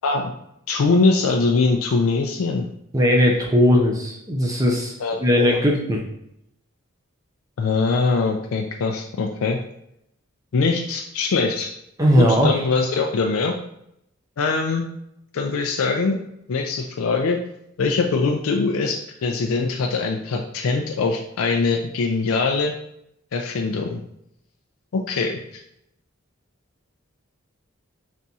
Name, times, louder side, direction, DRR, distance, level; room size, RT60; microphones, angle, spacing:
voice 1, 0.7-2.7 5.0-5.6 7.6-9.6 10.5-11.7 12.2-13.5 14.4-14.9 15.3-16.2 16.5-17.4 17.8-22.7 23.3-24.0 24.9-25.4, left 4 dB, 85° left, 2 dB, 0.4 m, -22 dB
voice 2, 2.9-4.9 5.2-6.0 12.0-12.6, equal, 15° right, 0 dB, 0.5 m, -18 dB
4.1 x 3.5 x 2.7 m, 0.77 s
head